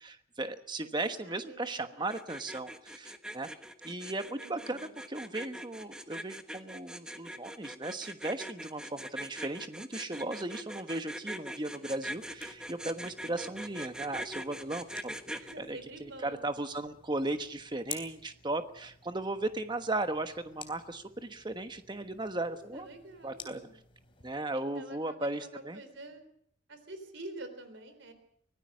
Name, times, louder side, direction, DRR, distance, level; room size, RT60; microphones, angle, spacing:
voice 1, 0.0-3.5 3.8-22.9 23.2-23.6 24.2-25.8, right 2 dB, 25° right, 8 dB, 1.2 m, -36 dB
voice 2, 1.0-2.2 4.4-4.9 11.7-12.0 15.4-16.6 22.4-23.7 24.5-26.2 26.7-28.1, right 2 dB, 70° right, 9 dB, 3.8 m, -48 dB
sound 1, 2.1-15.5, equal, 5° right, 1.1 m, -42 dB
sound 2, 11.9-24.3, left 7 dB, 30° left, 3.3 m, -52 dB
24.5 x 17.5 x 6.4 m, 0.66 s
head